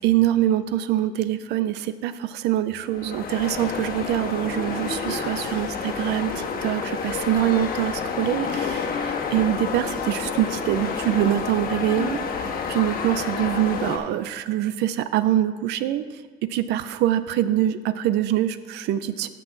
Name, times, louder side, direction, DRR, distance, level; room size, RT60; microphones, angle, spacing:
voice 1, 0.0-16.0 16.5-19.3, right 12 dB, 85° right, 13 dB, 0.5 m, -24 dB
sound 1, 2.9-14.0, left 5 dB, 60° left, 1.2 m, -29 dB
13.0 x 6.1 x 3.9 m, 1.5 s
cardioid pair, 110°, 17 cm